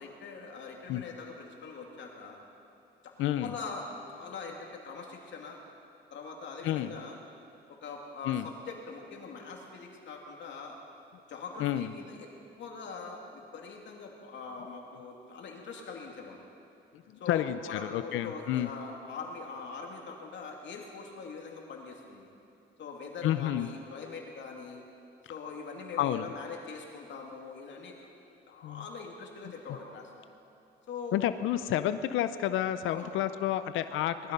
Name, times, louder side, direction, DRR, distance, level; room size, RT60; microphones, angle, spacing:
voice 1, 0.0-2.4 3.4-5.6 6.1-7.2 7.8-10.8 11.3-12.3 12.6-16.4 17.2-22.3 22.8-24.8 25.3-27.9 28.5-30.1 30.9-31.2 32.9-33.1, left 4 dB, 65° left, 0 dB, 2.7 m, -42 dB
voice 2, 3.2-3.5 6.6-6.9 8.2-8.5 11.6-11.9 17.3-18.7 23.2-23.7 26.0-26.3 28.6-28.9 29.5-29.6 31.1-34.3, left 12 dB, 85° left, 12 dB, 0.6 m, -30 dB
20.0 x 13.0 x 5.4 m, 2.8 s
cardioid pair, 90°, 20 cm